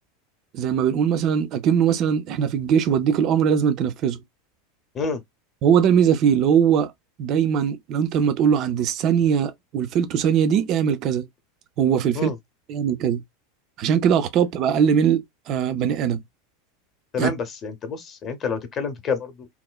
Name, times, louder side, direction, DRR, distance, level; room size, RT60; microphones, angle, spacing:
voice 1, 0.5-4.2 5.6-6.9 7.2-11.2 11.8-12.3 12.7-13.2 13.8-16.2 17.2-17.3, right 8 dB, 40° right, 0.4 m, -21 dB
voice 2, 17.1-19.5, left 5 dB, 30° left, 0.7 m, -28 dB
3.0 x 2.1 x 2.2 m
figure-of-eight pair, 80°, 0 cm